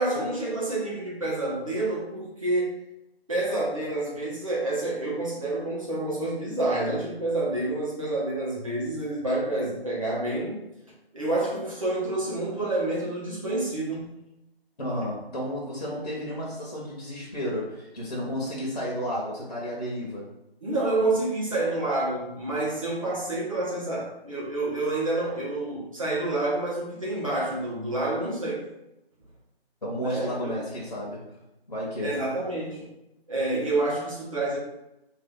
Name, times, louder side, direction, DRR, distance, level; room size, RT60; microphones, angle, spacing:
voice 1, 0.0-2.8 3.3-10.6 11.1-14.1 20.6-28.6 30.0-30.5 32.0-32.9 33.3-34.6, right 2 dB, 35° right, -6 dB, 0.9 m, -28 dB
voice 2, 14.8-20.2 29.8-31.4 31.7-32.1, equal, 45° left, -5 dB, 0.7 m, -32 dB
2.5 x 2.2 x 3.6 m, 0.91 s
figure-of-eight pair, 160°, 31 cm